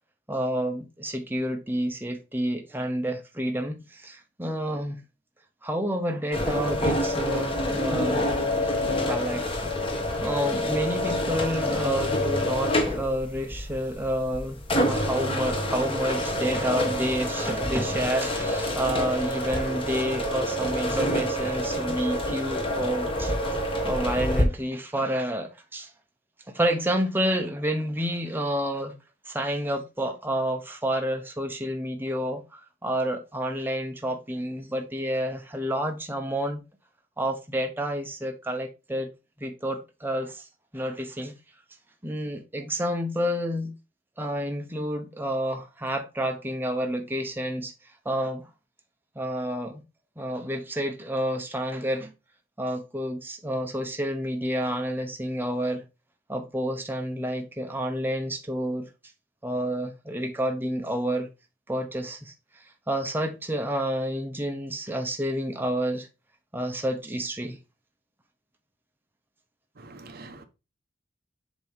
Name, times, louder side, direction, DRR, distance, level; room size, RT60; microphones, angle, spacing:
voice 1, 0.3-5.0 5.6-8.3 8.6-9.8 10.2-14.6 14.9-25.9 26.5-28.9 29.3-36.6 37.2-39.1 39.4-40.5 40.7-41.3 42.0-43.7 44.2-47.7 48.0-48.5 49.2-49.8 50.2-52.1 52.6-55.8 56.3-58.9 59.4-61.3 61.7-62.3 62.9-66.1 66.5-67.6, equal, 10° right, 0.9 m, -29 dB
sound 1, 6.3-24.4, left 1 dB, 30° left, 1.5 m, -27 dB
voice 2, 69.8-70.4, right 3 dB, 55° right, 1.0 m, -45 dB
7.6 x 3.1 x 5.6 m
head